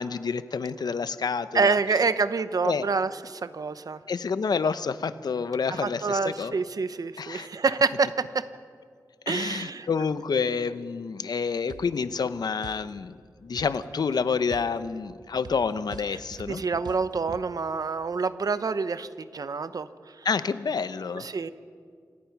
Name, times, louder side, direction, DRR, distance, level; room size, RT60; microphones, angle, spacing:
voice 1, 0.0-1.8 2.6-2.8 4.1-6.6 7.2-7.5 9.3-16.6 20.2-21.3, left 5 dB, 75° left, 13 dB, 0.8 m, -28 dB
voice 2, 1.5-4.0 5.8-8.5 9.3-9.9 16.5-19.9 21.2-21.5, right 4 dB, 60° right, 13 dB, 0.9 m, -27 dB
sound 1, 11.7-11.9 12.6-12.9 13.6-13.8 14.5-17.4, right 5 dB, 90° right, 0.9 m, -44 dB
27.0 x 18.5 x 6.0 m, 2.1 s
wide cardioid pair, 105°, 7 cm